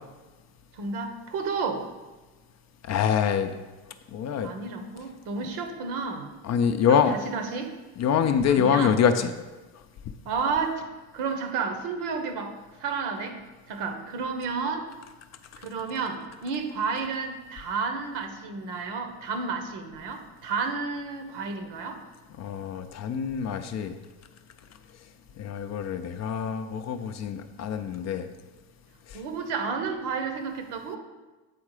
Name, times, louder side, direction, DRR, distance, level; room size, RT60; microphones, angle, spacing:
voice 1, 0.7-1.9 4.4-6.3 6.9-7.7 8.5-8.9 10.2-10.9 11.1-12.5 12.8-13.4 13.7-14.9 15.6-22.0 29.1-31.0, right 5 dB, 70° right, 6 dB, 1.2 m, -31 dB
voice 2, 2.8-3.5 4.1-4.5 6.4-7.2 8.0-9.3 22.4-23.9 25.4-28.2 29.1-29.2, left 7 dB, 40° left, 8 dB, 0.5 m, -25 dB
8.4 x 3.6 x 4.9 m, 1.2 s
supercardioid pair, 100°, 43 cm